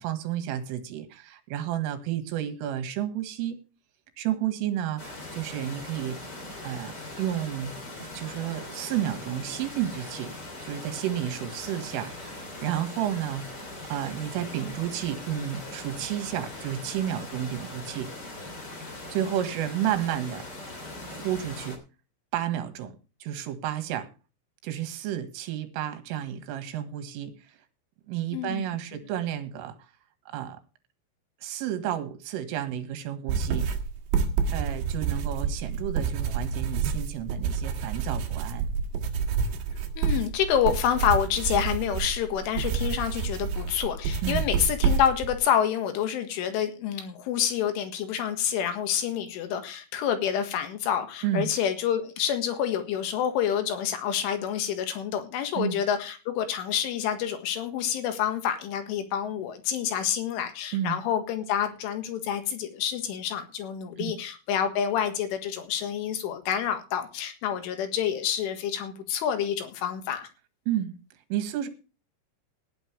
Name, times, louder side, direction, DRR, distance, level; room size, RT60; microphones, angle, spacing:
voice 1, 0.0-3.6 4.2-6.2 6.6-10.3 10.6-13.6 13.8-18.1 19.1-20.8 21.0-21.8 22.3-24.1 24.6-27.6 28.1-29.8 30.3-30.6 31.4-33.7 34.5-38.7 44.2-44.5 51.2-51.5 55.6-55.8 60.7-61.0 64.0-64.1 70.7-71.0 71.3-71.7, right 11 dB, 80° right, 9 dB, 4.2 m, -31 dB
sound 1, 5.0-21.8, left 2 dB, 25° left, 3.0 m, -40 dB
voice 2, 28.3-28.7 40.0-70.3, left 9 dB, 75° left, 8 dB, 4.1 m, -28 dB
sound 2, 33.3-45.4, right 6 dB, 65° right, 3.9 m, -28 dB
19.0 x 9.2 x 3.4 m, 0.32 s
omnidirectional pair, 5.9 m